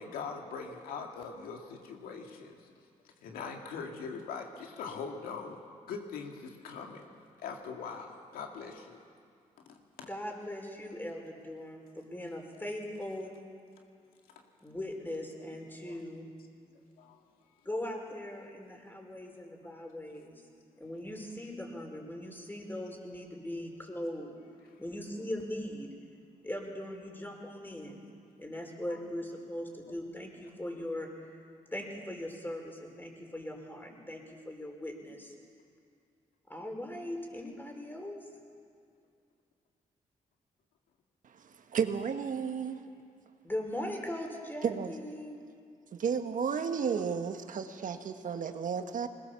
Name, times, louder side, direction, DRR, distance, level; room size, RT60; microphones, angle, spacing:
voice 1, 0.0-2.7 3.2-5.6 5.9-7.1 7.4-9.0 9.6-10.1 15.4-15.5 15.8-16.0 17.0-17.2 19.7-19.9 46.9-47.0 47.7-47.8 48.0-48.1 48.4-48.5, left 5 dB, 90° left, 2 dB, 2.1 m, -42 dB
voice 2, 10.1-13.3 14.6-16.3 17.7-20.4 20.8-24.3 24.8-25.9 26.4-28.0 28.4-31.4 31.7-35.3 36.5-38.2 43.4-45.4, left 1 dB, 15° left, 2 dB, 5.3 m, -40 dB
voice 3, 41.2-42.8 44.6-44.9 45.9-49.1, right 6 dB, 65° right, 7 dB, 1.4 m, -33 dB
21.0 x 19.5 x 7.1 m, 2.3 s
supercardioid pair, 55°, 15 cm